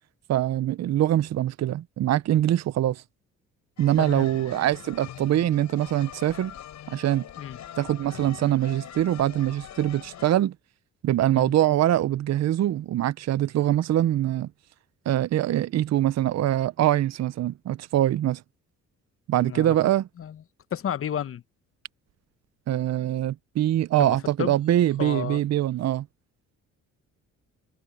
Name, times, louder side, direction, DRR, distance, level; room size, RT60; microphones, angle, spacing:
voice 1, 0.3-3.0 3.8-6.5 6.9-7.2 7.8-10.5 11.0-14.5 15.1-18.4 19.3-20.1 22.7-26.1, right 13 dB, 60° right, 0.7 m, -23 dB
sound 1, 3.8-10.3, left 10 dB, 70° left, 5.9 m, -43 dB
voice 2, 4.0-4.3 4.6-4.7 7.4-7.6 11.3-11.6 19.4-19.8 20.2-20.4 20.7-21.4 24.0-24.6 25.0-25.4, left 9 dB, 45° left, 1.0 m, -32 dB
cardioid pair, 90°, 30 cm